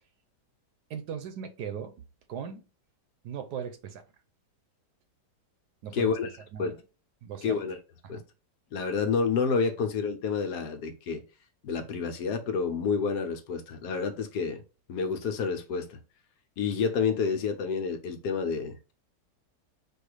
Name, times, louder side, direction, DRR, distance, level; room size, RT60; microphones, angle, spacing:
voice 1, 0.9-2.6 3.2-4.0 5.8-6.1 6.5-6.8 7.2-7.6 8.0-8.2, right 8 dB, 75° right, 1.2 m, -38 dB
voice 2, 5.9-6.3 6.6-6.8 7.4-7.8 8.1-8.2 8.7-11.2 11.6-14.6 14.9-16.0 16.6-18.9, left 5 dB, 70° left, 1.3 m, -29 dB
4.6 x 2.4 x 4.7 m
omnidirectional pair, 1.8 m